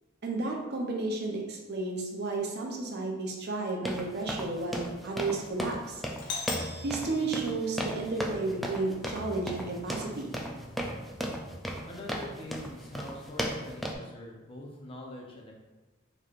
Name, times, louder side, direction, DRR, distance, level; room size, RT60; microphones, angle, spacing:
voice 1, 0.2-6.0 6.8-10.3, right 3 dB, 55° right, 0 dB, 0.7 m, -32 dB
sound 1, 3.8-14.0, equal, ahead, 0.3 m, -36 dB
Doorbell, 6.2-8.2, left 4 dB, 60° left, 0.7 m, -40 dB
sound 2, 6.4-11.8, equal, 20° right, 0.9 m, -48 dB
voice 2, 11.9-15.5, left 1 dB, 25° left, -2 dB, 0.7 m, -44 dB
4.5 x 3.1 x 2.5 m, 1.1 s
head